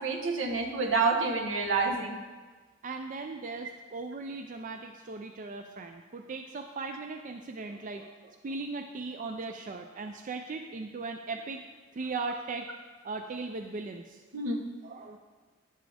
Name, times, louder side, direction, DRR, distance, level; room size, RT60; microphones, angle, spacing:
voice 1, 0.0-2.2 14.3-14.6, right 4 dB, 75° right, 3 dB, 1.0 m, -28 dB
voice 2, 2.8-11.7 11.9-12.7 13.0-14.2 14.8-15.2, right 3 dB, 40° right, 5 dB, 0.4 m, -38 dB
10.0 x 7.4 x 3.4 m, 1.4 s
head